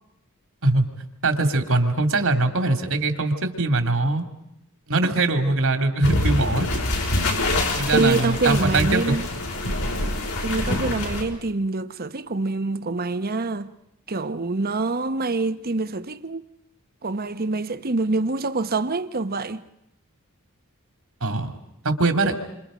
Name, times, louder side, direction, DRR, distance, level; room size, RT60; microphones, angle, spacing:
voice 1, 1.2-4.2 4.9-6.7 7.8-9.0 21.2-21.5 21.8-22.4, right 2 dB, 65° right, 2.7 m, -22 dB
sound 1, 6.0-11.2, left 1 dB, 80° left, 6.1 m, -25 dB
voice 2, 7.9-9.3 10.4-13.7 14.1-16.5 17.0-19.6, right 3 dB, 45° right, 1.0 m, -25 dB
29.0 x 26.5 x 5.1 m
head